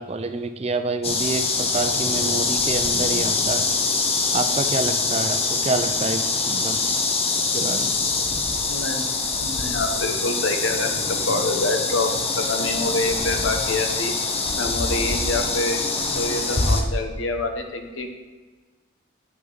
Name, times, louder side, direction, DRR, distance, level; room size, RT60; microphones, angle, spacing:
voice 1, 0.0-3.7 4.3-6.8 7.4-8.0, right 3 dB, 30° right, 8 dB, 0.5 m, -27 dB
sound 1, 1.0-16.8, left 4 dB, 30° left, 0.8 m, -24 dB
voice 2, 8.7-9.1 9.4-10.9 11.3-12.1 12.5-14.1 14.5-15.8 16.1-18.1, left 2 dB, 90° left, 5 dB, 1.1 m, -26 dB
9.4 x 6.7 x 4.1 m, 1.4 s
head